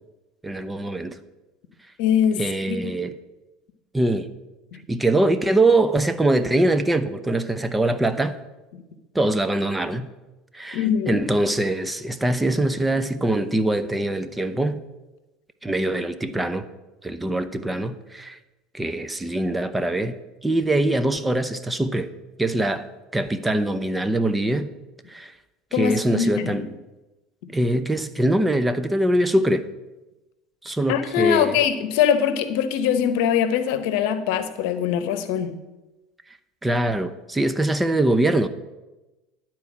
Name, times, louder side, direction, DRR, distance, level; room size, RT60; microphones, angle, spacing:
voice 1, 0.4-1.2 2.3-3.1 3.9-4.3 4.9-8.4 9.1-10.1 10.5-14.8 15.6-16.7 17.0-18.4 18.7-20.2 20.4-22.1 22.4-22.9 23.1-24.7 25.1-25.3 25.7-26.7 27.5-29.7 30.6-31.5 36.6-38.5, right 1 dB, 10° right, 11 dB, 0.7 m, -23 dB
voice 2, 2.0-2.4 2.7-3.1 8.7-8.8 10.7-11.2 25.7-26.7 30.9-35.5, left 8 dB, 70° left, 11 dB, 0.9 m, -22 dB
11.5 x 4.6 x 7.3 m, 1.1 s
hypercardioid pair, 80°, 0 cm